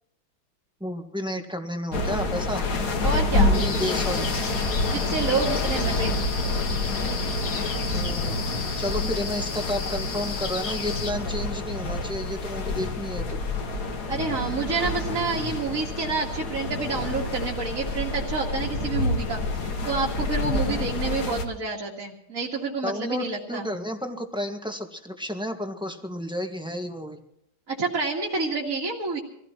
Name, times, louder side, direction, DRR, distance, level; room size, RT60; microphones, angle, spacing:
voice 1, 0.8-2.7 3.4-4.3 7.9-8.4 8.8-13.4 22.8-27.2, left 1 dB, 5° right, 4 dB, 1.4 m, -31 dB
sound 1, 1.9-21.4, left 2 dB, 50° left, 2.1 m, -28 dB
voice 2, 3.0-3.6 4.9-6.2 14.1-23.7 27.7-29.2, right 4 dB, 40° right, -5 dB, 2.7 m, -28 dB
sound 2, 3.5-11.1, left 4 dB, 75° left, 2.8 m, -33 dB
25.5 x 16.5 x 3.0 m, 0.77 s
omnidirectional pair, 2.2 m